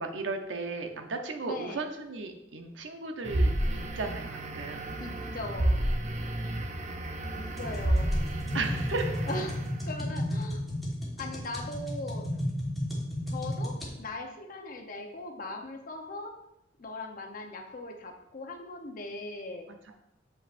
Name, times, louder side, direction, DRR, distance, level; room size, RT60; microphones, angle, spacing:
voice 1, 0.0-4.9 6.4-6.7 8.5-9.3 19.7-20.0, right 3 dB, 85° right, 5 dB, 0.8 m, -36 dB
voice 2, 1.4-1.8 5.0-5.8 7.3-8.1 9.3-9.6 9.9-10.6 11.2-12.3 13.3-16.3 16.8-19.7, left 2 dB, 50° left, 3 dB, 0.8 m, -39 dB
sound 1, 3.2-10.0, right 1 dB, 40° right, 0.6 m, -31 dB
sound 2, 7.6-13.9, left 1 dB, ahead, 1.3 m, -34 dB
7.4 x 5.3 x 2.5 m, 0.85 s
head